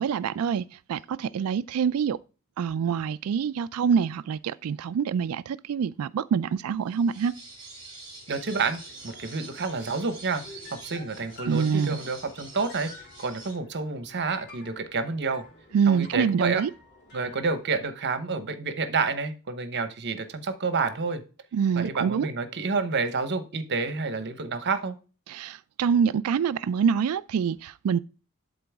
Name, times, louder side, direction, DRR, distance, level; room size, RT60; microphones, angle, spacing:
voice 1, 0.0-2.2 2.6-7.3 11.5-12.0 15.7-16.7 21.5-22.3 25.3-28.0, right 7 dB, 80° right, 0.3 m, -25 dB
sound 1, 6.8-13.5, right 3 dB, 25° right, 3.6 m, -46 dB
sound 2, 7.4-17.9, left 2 dB, 50° left, 2.7 m, -51 dB
voice 2, 8.3-10.4 10.7-15.4 15.9-16.6 17.1-21.2 21.8-24.9, right 4 dB, 55° right, 1.0 m, -29 dB
11.5 x 3.9 x 3.5 m
head